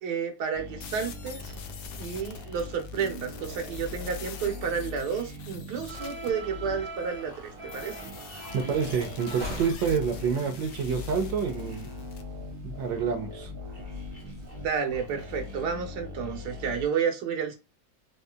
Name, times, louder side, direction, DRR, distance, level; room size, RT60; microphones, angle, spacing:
voice 1, 0.0-1.5 2.0-8.0 14.5-17.6, right 6 dB, 65° right, 1.4 m, -31 dB
sound 1, 0.5-16.8, left 3 dB, 10° right, 1.0 m, -41 dB
sound 2, 0.8-6.3 7.7-12.2, left 6 dB, 70° left, 1.1 m, -45 dB
sound 3, 5.9-15.6, right 1 dB, 35° right, 0.5 m, -44 dB
voice 2, 8.5-11.9 12.6-13.5, right 6 dB, 90° right, 1.4 m, -28 dB
3.8 x 2.7 x 2.3 m
omnidirectional pair, 2.0 m